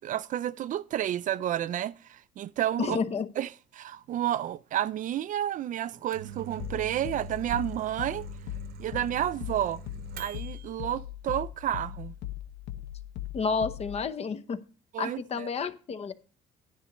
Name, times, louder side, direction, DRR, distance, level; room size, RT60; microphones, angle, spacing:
voice 1, 0.0-3.0 3.4-8.3 8.8-9.8 10.2-12.1 14.9-15.5, right 11 dB, 50° right, 0.4 m, -31 dB
voice 2, 2.8-3.3 13.3-14.6 15.0-16.1, left 5 dB, 40° left, 0.8 m, -30 dB
Microwave oven, 5.9-10.7, right 10 dB, 70° right, 1.0 m, -44 dB
sound 1, 6.6-14.1, left 13 dB, 85° left, 0.8 m, -40 dB
11.0 x 9.9 x 3.0 m
cardioid pair, 110°, 17 cm